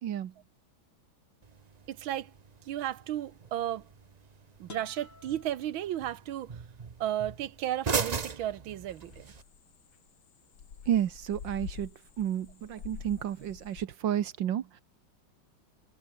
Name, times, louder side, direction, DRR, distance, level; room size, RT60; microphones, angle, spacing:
voice 1, 0.0-0.3 10.9-11.9 12.2-14.8, right 10 dB, 70° right, 1.7 m, -31 dB
sound 1, 1.4-9.4, right 5 dB, 50° right, 0.4 m, -39 dB
voice 2, 1.9-2.3 2.7-3.9 4.6-6.6 7.0-9.3, right 12 dB, 90° right, 1.8 m, -34 dB
sound 2, 4.7-6.6, left 3 dB, 40° left, 3.2 m, -53 dB
sound 3, 8.9-13.8, left 7 dB, 90° left, 2.9 m, -47 dB
omnidirectional pair, 2.2 m